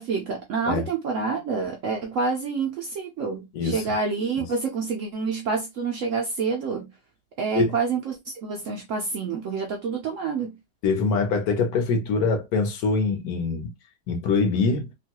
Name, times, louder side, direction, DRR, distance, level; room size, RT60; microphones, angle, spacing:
voice 1, 0.0-6.9 7.4-10.6, right 5 dB, 70° right, 0.7 m, -28 dB
voice 2, 10.8-13.7 14.1-14.9, left 4 dB, 70° left, 1.2 m, -24 dB
3.0 x 2.2 x 2.8 m
omnidirectional pair, 1.8 m